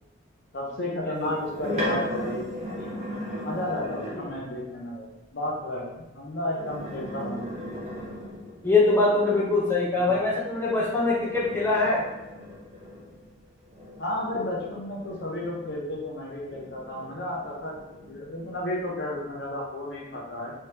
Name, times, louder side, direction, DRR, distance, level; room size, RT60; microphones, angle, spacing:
voice 1, 0.5-2.4 2.7-2.9 3.4-5.0 5.3-7.5 9.9-10.1 14.0-17.8 18.1-20.5, left 1 dB, 60° left, -2 dB, 0.6 m, -32 dB
sound 1, 1.2-4.5 6.4-8.8 10.7-15.9 16.5-18.2, equal, 35° right, 0.7 m, -37 dB
voice 2, 8.6-12.0, left 3 dB, 10° left, -6 dB, 0.8 m, -23 dB
3.2 x 3.2 x 2.8 m, 0.97 s
head